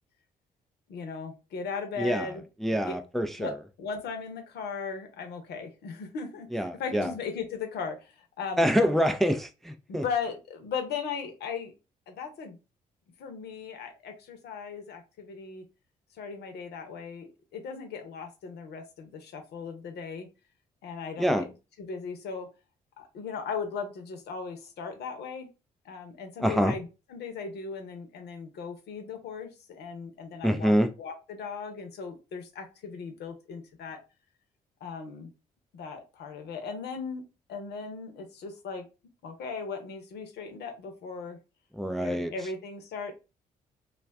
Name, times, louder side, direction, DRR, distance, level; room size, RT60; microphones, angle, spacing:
voice 1, 0.9-2.4 2.9-3.0 3.4-3.5 3.8-8.9 9.9-11.7 12.1-12.6 13.2-15.6 16.2-20.3 20.8-22.5 23.0-25.5 25.8-30.7 31.0-34.0 34.8-35.3 35.7-37.2 37.5-38.8 39.2-41.4 42.0-43.1, left 5 dB, 60° left, 0.8 m, -37 dB
voice 2, 2.0-2.3 2.6-3.5 6.5-7.1 8.6-10.0 21.2-21.5 26.4-26.8 30.4-30.9 41.7-42.3, equal, ahead, 0.4 m, -26 dB
2.4 x 2.3 x 3.4 m
figure-of-eight pair, 40°, 19 cm